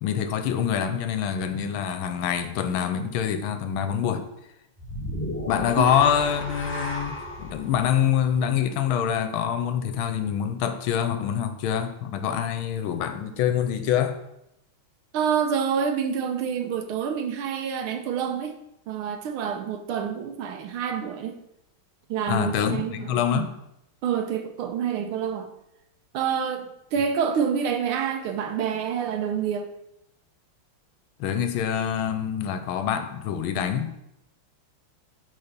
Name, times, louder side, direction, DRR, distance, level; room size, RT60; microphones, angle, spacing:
voice 1, 0.0-4.3 5.5-7.1 7.4-14.2 22.3-23.5 31.2-33.9, left 9 dB, 75° left, 8 dB, 1.5 m, -25 dB
sound 1, 4.8-9.1, left 1 dB, 5° left, 1.1 m, -35 dB
voice 2, 15.1-18.5 18.9-21.4 22.1-23.5 24.0-25.5 26.1-29.7, right 7 dB, 80° right, 6 dB, 1.6 m, -27 dB
6.6 x 4.1 x 5.9 m, 0.82 s
omnidirectional pair, 2.4 m